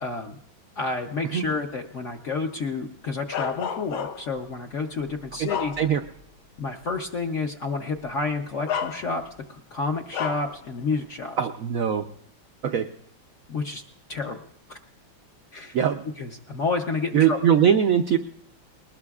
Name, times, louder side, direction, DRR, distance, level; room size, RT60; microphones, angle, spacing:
voice 1, 0.0-0.4 0.8-5.7 6.6-9.2 9.5-11.4 13.5-13.8 14.1-14.4 14.7-14.8 15.5-15.8 16.2-17.4, left 4 dB, 55° left, 4 dB, 0.8 m, -30 dB
Bark, 3.3-4.4 5.0-6.2 6.7-6.8 8.0-8.1 8.7-9.4 10.1-10.6, left 8 dB, 80° left, 1.5 m, -31 dB
voice 2, 11.4-12.0 12.6-12.9 15.7-16.0 17.1-18.2, right 8 dB, 80° right, 7 dB, 0.7 m, -21 dB
21.0 x 19.0 x 2.4 m, 0.75 s
omnidirectional pair, 2.2 m